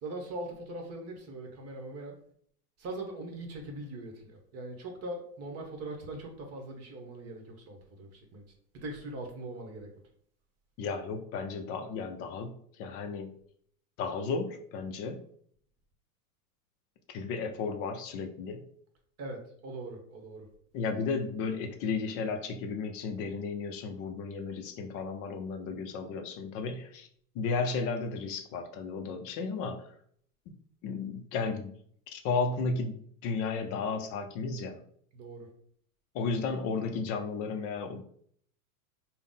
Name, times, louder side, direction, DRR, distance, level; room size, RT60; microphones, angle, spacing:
voice 1, 0.0-2.1 2.8-8.4 8.7-9.9 19.2-20.5 35.1-35.5, right 2 dB, 35° right, 3 dB, 1.0 m, -41 dB
voice 2, 10.8-13.3 14.0-15.2 17.1-18.6 20.7-27.1 27.3-29.9 30.5-30.6 30.8-31.7 32.1-34.8 36.1-38.0, left 4 dB, 35° left, 6 dB, 0.4 m, -34 dB
3.6 x 2.1 x 3.8 m, 0.62 s
hypercardioid pair, 105°, 45 cm